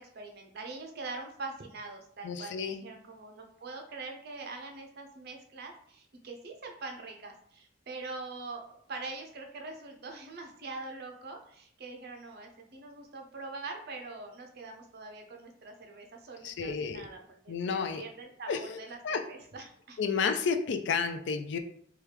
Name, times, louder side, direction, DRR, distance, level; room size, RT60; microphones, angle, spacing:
voice 1, 0.0-20.0, right 3 dB, 60° right, 3 dB, 0.6 m, -43 dB
voice 2, 2.2-2.8 16.4-17.1 17.5-18.0 18.5-19.2 20.0-21.6, left 5 dB, 70° left, 8 dB, 0.4 m, -31 dB
3.0 x 2.3 x 3.2 m, 0.62 s
head